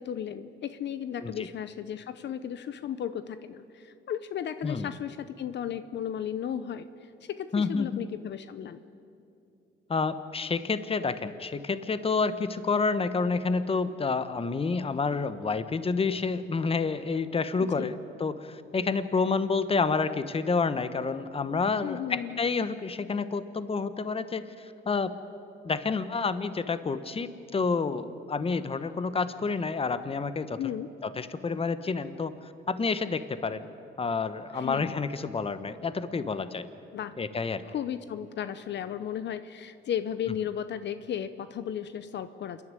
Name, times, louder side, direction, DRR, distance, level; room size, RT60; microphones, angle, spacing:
voice 1, 0.0-8.8 17.6-17.9 21.8-22.4 30.6-30.9 34.5-35.0 36.9-37.1 37.7-42.6, left 9 dB, 60° left, 12 dB, 0.8 m, -35 dB
voice 2, 7.5-8.0 9.9-25.2 25.6-30.6 31.0-33.7 34.0-36.7 37.2-37.6, left 4 dB, 30° left, 13 dB, 1.0 m, -29 dB
27.5 x 11.0 x 9.7 m, 2.7 s
cardioid pair, 90°, 20 cm